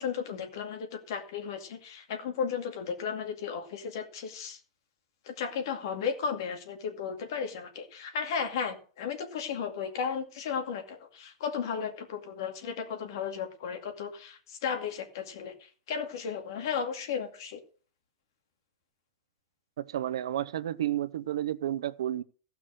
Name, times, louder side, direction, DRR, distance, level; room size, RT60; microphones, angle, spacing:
voice 1, 0.0-4.6 5.3-17.6, left 6 dB, 55° left, 2.3 m, -34 dB
voice 2, 19.8-22.2, right 12 dB, 85° right, 0.7 m, -31 dB
15.5 x 6.0 x 6.3 m
supercardioid pair, 175°, 3 cm